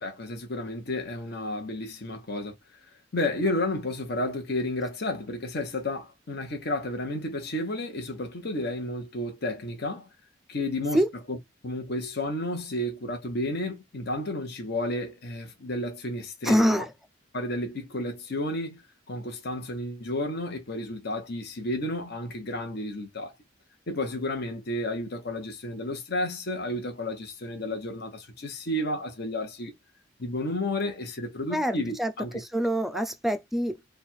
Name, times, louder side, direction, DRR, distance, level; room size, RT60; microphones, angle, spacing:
voice 1, 0.0-2.5 3.1-10.1 10.5-11.0 11.3-11.4 11.6-16.8 17.3-18.8 19.1-23.3 23.9-29.7 30.2-32.4 32.9-33.0, left 1 dB, 55° left, 1.1 m, -32 dB
voice 2, 16.4-16.9 31.5-33.8, equal, ahead, 0.4 m, -25 dB
3.3 x 2.4 x 4.3 m
head